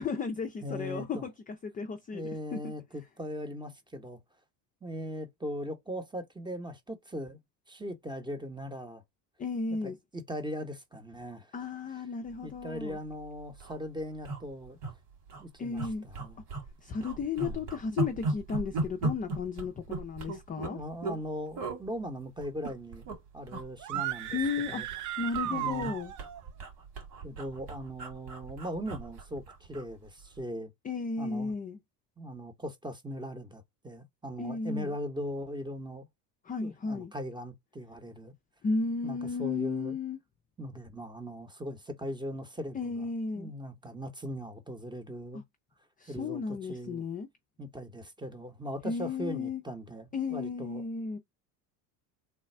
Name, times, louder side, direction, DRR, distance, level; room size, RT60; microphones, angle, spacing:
voice 1, 0.0-2.6 9.4-10.0 11.5-13.0 15.6-16.0 16.8-20.8 24.3-24.8 25.2-26.1 30.8-31.8 34.4-34.9 36.4-37.1 38.6-40.2 42.7-43.5 45.3-45.4 46.0-47.3 48.8-49.6 50.1-51.2, left 4 dB, 20° left, 0.4 m, -34 dB
voice 2, 0.6-1.3 2.1-4.2 4.8-7.4 7.7-9.0 9.7-11.5 12.4-14.8 15.4-16.4 17.4-17.7 20.7-23.1 23.3-24.4 24.7-24.9 25.5-25.9 27.2-30.7 31.2-31.5 32.2-36.1 36.6-38.3 39.0-39.9 40.6-43.1 43.3-45.4 46.1-46.4 46.7-47.0 47.6-50.8, equal, 10° right, 0.8 m, -39 dB
sound 1, 12.8-13.0 13.2-13.3 13.5-13.8 14.2-14.9 15.3-15.4 15.8-16.7 17.0-21.2 21.6-21.8 22.4-23.2 23.5-23.7 23.9-25.1 25.3-29.9 30.2-30.4, right 3 dB, 70° right, 2.2 m, -36 dB
sound 2, 23.8-26.4, right 12 dB, 40° right, 0.5 m, -35 dB
3.3 x 2.3 x 4.2 m
hypercardioid pair, 85°, 48 cm